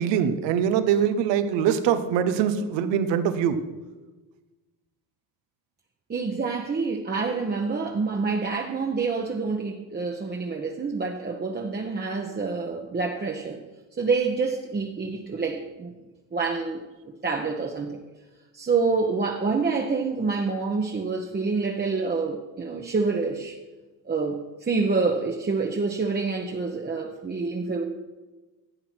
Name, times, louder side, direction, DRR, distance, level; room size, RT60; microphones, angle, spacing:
voice 1, 0.0-3.6, right 8 dB, 80° right, 11 dB, 1.1 m, -23 dB
voice 2, 6.1-13.6 14.0-15.9 16.3-16.8 17.2-18.0 18.5-23.6 24.1-27.8, right 4 dB, 25° right, 1 dB, 1.0 m, -27 dB
11.5 x 7.7 x 6.1 m, 1.2 s
supercardioid pair, 90°, 43 cm